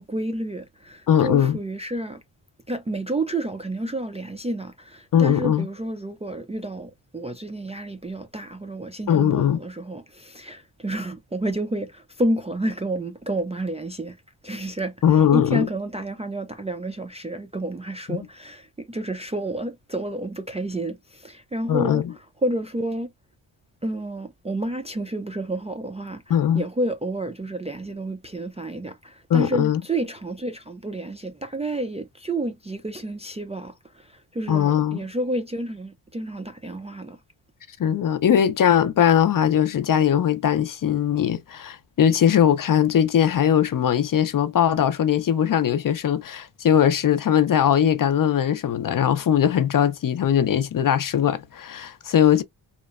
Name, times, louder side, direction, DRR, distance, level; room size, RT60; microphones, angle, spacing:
voice 1, 0.0-2.2 2.7-14.2 14.4-14.9 15.3-22.0 22.4-23.1 23.8-26.2 26.5-37.2, right 1 dB, 15° right, 0.3 m, -30 dB
voice 2, 1.1-1.6 5.1-5.7 9.1-9.6 15.0-15.7 18.1-18.3 21.7-22.1 26.3-26.6 29.3-29.8 34.5-35.0 37.8-52.4, left 9 dB, 45° left, 0.5 m, -20 dB
2.8 x 2.1 x 2.3 m
cardioid pair, 80°, 46 cm